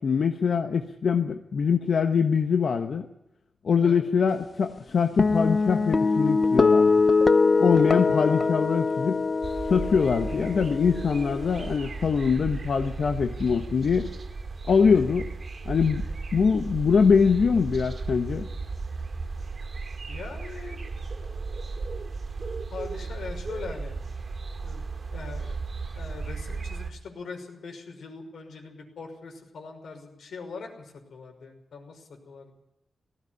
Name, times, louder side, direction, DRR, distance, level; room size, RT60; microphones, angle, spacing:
voice 1, 0.0-3.1 3.6-6.9 7.6-9.2 9.7-14.1 14.7-15.3 15.7-16.0 16.3-18.5, left 6 dB, 60° left, 6 dB, 1.2 m, -23 dB
sound 1, 5.2-11.8, left 4 dB, 35° left, 0.7 m, -23 dB
sound 2, 9.4-26.9, right 4 dB, 45° right, 2.3 m, -35 dB
voice 2, 20.1-20.8 22.7-23.9 24.6-25.6 25.9-32.5, left 4 dB, 90° left, 3 dB, 5.7 m, -41 dB
18.5 x 15.5 x 9.7 m, 0.88 s
wide cardioid pair, 125°, 0 cm